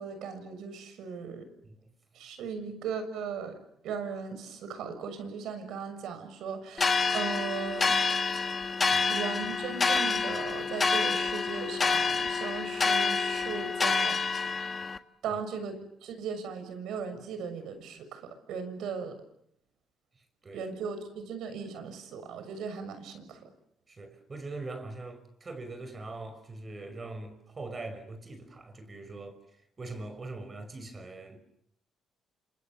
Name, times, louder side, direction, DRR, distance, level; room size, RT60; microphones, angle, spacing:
voice 1, 0.0-1.5 2.1-3.6 3.8-8.0 9.1-14.7 15.2-19.2 20.5-23.4, right 6 dB, 80° right, 6.8 m, -37 dB
sound 1, 6.8-15.0, left 4 dB, 35° left, 1.6 m, -28 dB
voice 2, 20.1-20.6 23.9-31.4, right 2 dB, 35° right, 5.8 m, -42 dB
29.0 x 27.0 x 7.1 m
cardioid pair, 90°, 0 cm